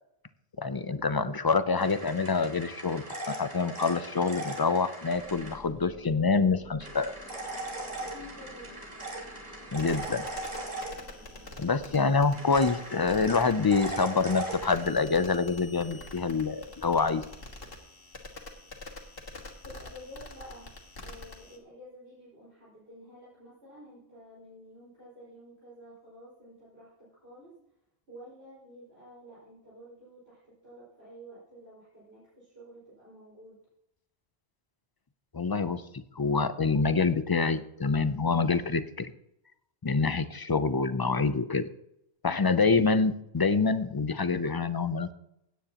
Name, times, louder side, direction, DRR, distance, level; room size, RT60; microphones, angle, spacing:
voice 1, 0.6-7.1 9.7-10.3 11.6-17.2 35.3-39.1 39.8-41.7 42.2-45.1, left 4 dB, 40° left, 12 dB, 0.3 m, -26 dB
sound 1, 1.8-5.5 6.8-11.4 12.3-14.8, right 2 dB, 40° right, 2.9 m, -39 dB
sound 2, 5.1-17.8, left 1 dB, 10° right, 4.5 m, -54 dB
voice 2, 7.9-8.8 19.6-20.7 21.0-27.5 28.1-33.6, equal, 75° right, -10 dB, 5.3 m, -50 dB
sound 3, 9.8-21.6, left 2 dB, 60° left, 1.8 m, -46 dB
16.5 x 9.3 x 2.9 m, 0.80 s
omnidirectional pair, 1.1 m